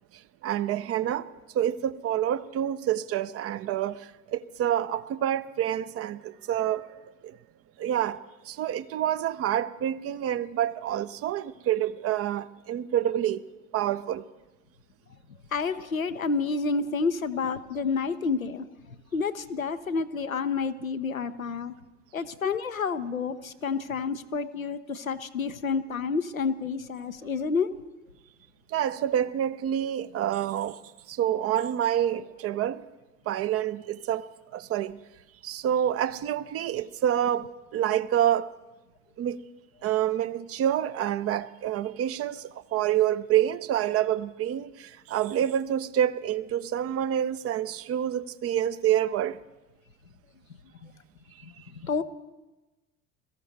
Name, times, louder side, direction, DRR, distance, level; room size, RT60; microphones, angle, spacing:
voice 1, 0.4-1.3 1.5-6.9 7.2-7.4 7.8-13.4 13.7-14.2 28.7-30.8 31.1-32.8 33.3-35.0 35.4-38.5 39.2-39.4 39.8-49.4, right 11 dB, 35° right, 0.6 m, -27 dB
voice 2, 15.5-18.7 19.1-21.7 22.1-27.7 50.8-50.9 51.4-52.0, left 5 dB, 90° left, 0.6 m, -29 dB
22.0 x 14.5 x 4.0 m
figure-of-eight pair, 60°, 40 cm